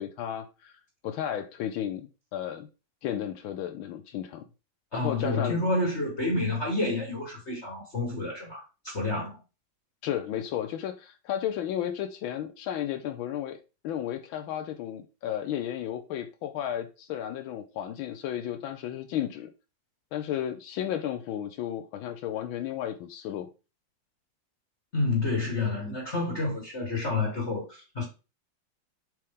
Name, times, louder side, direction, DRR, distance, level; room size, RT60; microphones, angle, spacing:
voice 1, 0.0-2.7 3.0-4.4 4.9-5.6 10.0-13.6 13.8-19.5 20.1-23.5, left 10 dB, 85° left, 1.5 m, -33 dB
voice 2, 4.9-9.4 24.9-28.1, left 2 dB, 35° left, 1.8 m, -29 dB
7.5 x 4.8 x 3.7 m
omnidirectional pair, 2.2 m